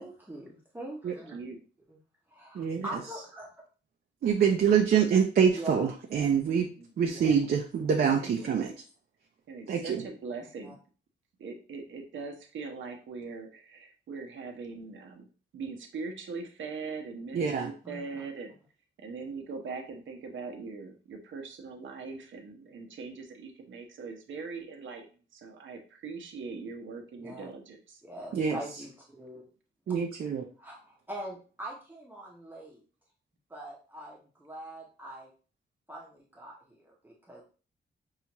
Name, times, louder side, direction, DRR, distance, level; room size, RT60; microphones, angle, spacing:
voice 1, 0.0-1.4 1.9-2.0 2.3-3.5 5.5-5.9 7.1-7.3 8.4-8.6 10.6-10.7 17.8-18.2 27.2-27.5 28.0-29.4 30.6-32.8 33.5-35.3 35.9-37.4, right 1 dB, 10° right, -4 dB, 0.7 m, -43 dB
voice 2, 1.1-1.6 6.8-6.9 8.2-8.7 9.5-10.8 11.4-15.3 15.5-18.5 19.0-25.1 25.3-28.0, right 4 dB, 75° right, 3 dB, 0.8 m, -41 dB
voice 3, 2.5-2.9 4.2-6.7 7.0-8.7 9.7-10.0 17.3-17.7 28.3-28.6 29.9-30.4, right 7 dB, 50° right, 2 dB, 0.5 m, -25 dB
5.6 x 2.4 x 2.9 m, 0.38 s
wide cardioid pair, 170°, 20 cm